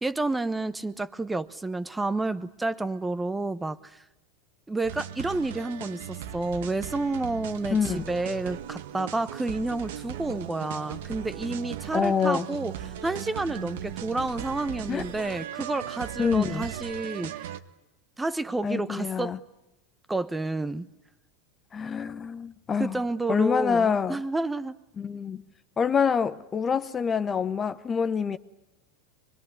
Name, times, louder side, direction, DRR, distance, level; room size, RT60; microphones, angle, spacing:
voice 1, 0.0-4.0 4.7-12.7 13.0-17.5 18.2-19.4 20.1-20.9 22.8-24.8, right 2 dB, 10° right, 1.1 m, -30 dB
sound 1, 4.8-17.6, right 11 dB, 80° right, 1.5 m, -38 dB
voice 2, 7.7-8.1 11.9-12.5 14.9-15.0 16.2-16.7 18.6-19.4 21.7-23.0 23.3-24.2 25.0-25.4 25.8-28.4, left 6 dB, 25° left, 0.9 m, -26 dB
24.5 x 22.5 x 9.6 m
supercardioid pair, 120°, 0 cm